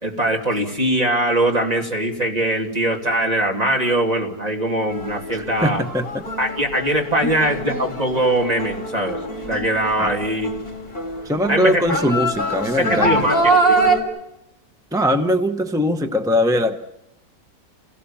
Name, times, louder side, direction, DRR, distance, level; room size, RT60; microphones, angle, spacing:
voice 1, 0.0-5.8 6.4-10.5 11.5-11.8 12.8-13.9, right 1 dB, 25° right, 0 dB, 3.0 m, -21 dB
sound 1, 4.9-14.0, right 2 dB, 35° left, 3.8 m, -24 dB
voice 2, 5.3-6.2 7.2-7.3 10.0-10.1 11.2-13.3 14.9-16.8, equal, 5° right, 7 dB, 0.5 m, -21 dB
30.0 x 18.0 x 7.2 m, 0.86 s
omnidirectional pair, 1.6 m